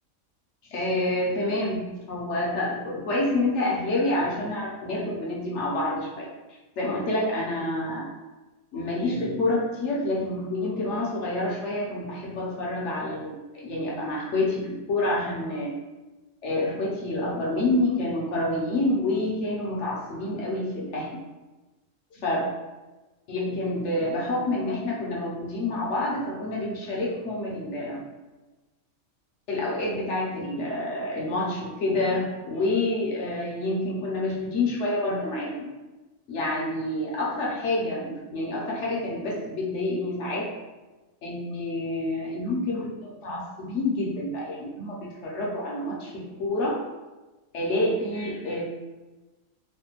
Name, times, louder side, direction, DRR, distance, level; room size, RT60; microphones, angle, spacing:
voice 1, 0.6-6.3 6.8-8.0 8.7-15.7 16.4-21.1 22.1-22.5 23.3-28.0 29.5-35.7 36.3-40.5 41.2-46.8 47.5-48.6, left 2 dB, 60° left, -4 dB, 1.0 m, -28 dB
3.2 x 2.1 x 2.9 m, 1.1 s
omnidirectional pair, 1.5 m